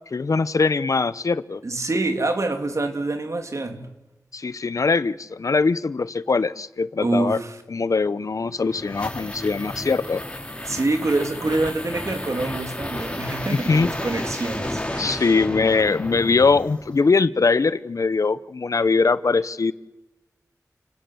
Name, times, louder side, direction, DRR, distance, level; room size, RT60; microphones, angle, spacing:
voice 1, 0.1-1.6 4.3-7.4 7.7-10.2 13.5-13.9 15.0-19.7, left 4 dB, 65° left, 0.8 m, -21 dB
voice 2, 1.6-3.9 7.0-7.6 10.7-15.2, right 2 dB, 60° right, 2.9 m, -26 dB
sound 1, 8.3-17.1, left 1 dB, 20° left, 3.7 m, -32 dB
30.0 x 17.5 x 8.0 m
cardioid pair, 45°, 6 cm